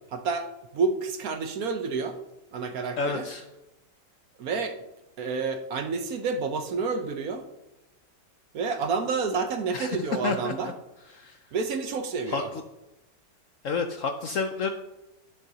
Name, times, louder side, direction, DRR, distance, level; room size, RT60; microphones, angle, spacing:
voice 1, 0.1-0.5 0.7-2.2 2.5-3.3 4.4-4.8 5.2-7.4 8.5-10.7 11.5-12.5, right 4 dB, 65° right, 7 dB, 1.2 m, -29 dB
voice 2, 3.0-3.5 9.7-10.0 10.2-10.7 11.1-11.4 12.3-12.6 13.6-14.7, left 4 dB, 65° left, 6 dB, 0.8 m, -30 dB
11.5 x 10.0 x 2.8 m, 0.96 s
omnidirectional pair, 1.9 m